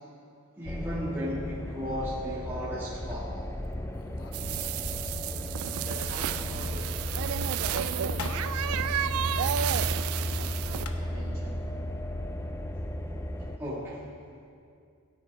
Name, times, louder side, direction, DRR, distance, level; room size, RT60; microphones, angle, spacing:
voice 1, 0.6-3.3 13.6-14.0, equal, 10° right, -10 dB, 1.6 m, -34 dB
sound 1, 0.7-13.6, left 1 dB, 10° left, 0.4 m, -34 dB
sound 2, 2.1-2.4 3.9-5.4 5.6-5.7 6.0-6.1 7.5-8.7 10.4-10.5 10.7-11.3, left 4 dB, 85° left, 0.9 m, -43 dB
sound 3, 4.3-10.8, right 10 dB, 70° right, 0.3 m, -32 dB
voice 2, 5.8-9.9 10.3-11.7, right 1 dB, 40° right, -5 dB, 2.4 m, -47 dB
17.0 x 9.7 x 3.5 m, 2.3 s
head